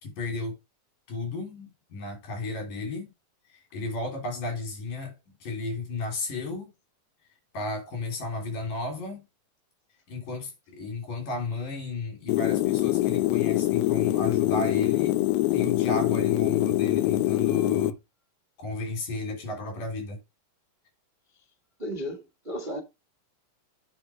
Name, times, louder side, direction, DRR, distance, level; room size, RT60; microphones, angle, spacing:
voice 1, 0.0-0.6 1.1-3.1 3.5-6.7 7.5-9.2 10.1-15.2 15.5-18.0 18.6-20.2, left 2 dB, 70° left, 4.8 m, -33 dB
sound 1, 12.3-17.9, left 17 dB, 85° left, 1.6 m, -24 dB
voice 2, 21.8-22.8, equal, 75° right, 0.4 m, -34 dB
9.3 x 4.0 x 4.9 m
omnidirectional pair, 3.8 m